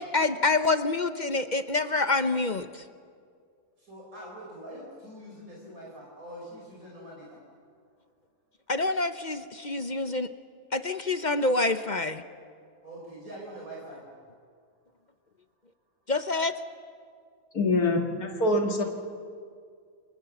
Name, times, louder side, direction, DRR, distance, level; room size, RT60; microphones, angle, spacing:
voice 1, 0.0-2.8 8.7-10.3 10.7-12.2 16.1-16.5, left 3 dB, 40° left, 10 dB, 0.8 m, -27 dB
voice 2, 3.9-7.1 12.8-14.0, right 1 dB, 70° right, -3 dB, 5.0 m, -43 dB
voice 3, 17.5-18.8, left 2 dB, 85° left, 2 dB, 2.5 m, -25 dB
29.0 x 24.5 x 7.2 m, 2.2 s
omnidirectional pair, 1.6 m